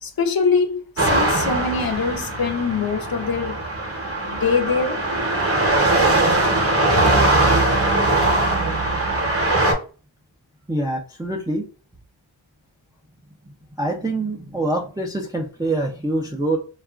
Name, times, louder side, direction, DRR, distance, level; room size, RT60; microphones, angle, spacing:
voice 1, 0.0-3.6 4.2-5.0, left 5 dB, 50° left, 0.6 m, -23 dB
sound 1, 1.0-9.7, right 2 dB, 30° right, 0.9 m, -20 dB
voice 2, 10.7-11.7 13.8-16.6, right 2 dB, 10° right, 0.4 m, -25 dB
2.8 x 2.4 x 2.3 m
wide cardioid pair, 55°, 47 cm